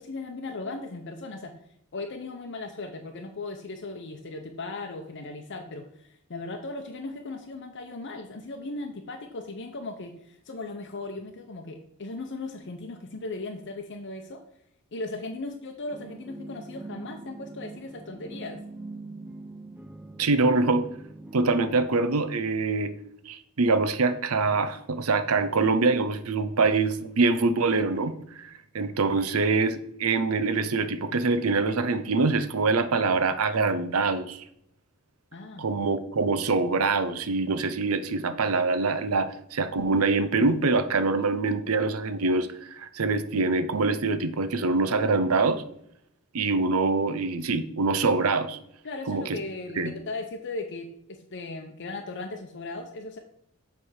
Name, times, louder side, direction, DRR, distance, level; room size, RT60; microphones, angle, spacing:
voice 1, 0.0-1.5 1.9-14.4 14.9-18.6 35.3-35.7 41.2-41.3 48.8-53.2, left 2 dB, 55° left, 4 dB, 0.7 m, -37 dB
sound 1, 15.9-22.3, right 2 dB, 10° right, 0.4 m, -43 dB
voice 2, 20.2-20.9 21.3-22.9 23.3-34.4 35.6-45.6 46.3-48.6 49.1-49.4 49.8-49.9, right 3 dB, 90° right, 11 dB, 0.7 m, -24 dB
7.3 x 3.5 x 6.4 m, 0.73 s
head